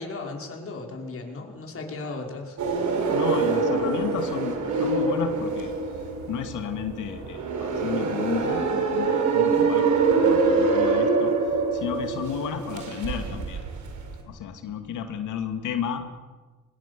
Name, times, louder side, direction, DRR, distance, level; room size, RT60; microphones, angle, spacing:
voice 1, 0.0-3.0, left 3 dB, 45° left, 1 dB, 5.7 m, -36 dB
sound 1, 2.6-14.2, right 4 dB, 70° right, 5.2 m, -25 dB
voice 2, 3.1-5.7 6.3-13.6 14.3-16.1, left 8 dB, 85° left, 6 dB, 2.5 m, -33 dB
24.0 x 21.5 x 7.0 m, 1.3 s
cardioid pair, 90°, 30 cm